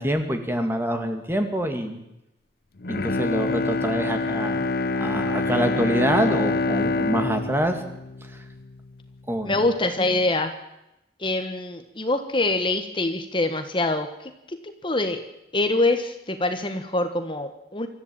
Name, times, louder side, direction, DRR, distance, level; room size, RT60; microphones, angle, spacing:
voice 1, 0.0-2.0 2.9-7.8 8.2-8.4 9.3-9.6, equal, 15° right, 7 dB, 2.2 m, -26 dB
Bowed string instrument, 2.8-9.0 9.4-9.5, left 3 dB, 55° left, 0.7 m, -26 dB
voice 2, 9.4-10.5 11.2-15.2 15.5-17.9, left 2 dB, 30° left, 8 dB, 1.4 m, -25 dB
25.0 x 14.0 x 8.8 m, 0.88 s
head